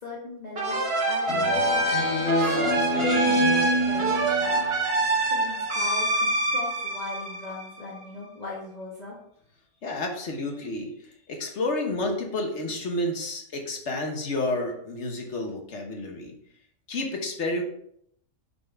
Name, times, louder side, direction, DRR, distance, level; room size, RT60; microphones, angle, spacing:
voice 1, 0.0-1.9 2.4-4.6 5.2-9.2, left 3 dB, 30° left, -6 dB, 1.3 m, -38 dB
sound 1, 0.6-8.0, right 2 dB, 50° right, 1.2 m, -26 dB
Speech synthesizer, 1.3-4.8, equal, 80° left, 1.8 m, -26 dB
voice 2, 9.8-16.3 16.9-17.6, left 2 dB, 55° left, 2 dB, 1.4 m, -30 dB
5.9 x 5.4 x 3.5 m, 0.70 s
omnidirectional pair, 1.5 m